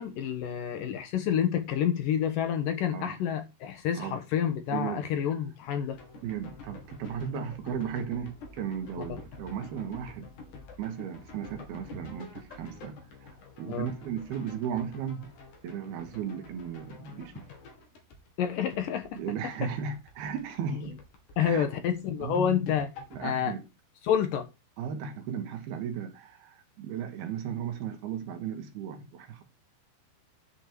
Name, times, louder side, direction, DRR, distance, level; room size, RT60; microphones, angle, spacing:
voice 1, 0.0-6.0 13.7-13.9 18.4-19.2 19.6-19.7 21.4-22.9 23.2-23.6 24.0-24.5, left 9 dB, 75° left, 2.0 m, -28 dB
voice 2, 4.7-5.0 6.2-10.3 10.8-15.3 15.6-17.5 19.1-21.0 21.4-21.6 22.2-22.7 23.1-23.7 24.8-29.4, right 7 dB, 65° right, 3.0 m, -35 dB
sound 1, 5.9-20.6 20.8-23.3, left 4 dB, 50° left, 2.9 m, -48 dB
11.0 x 5.0 x 5.1 m
omnidirectional pair, 5.6 m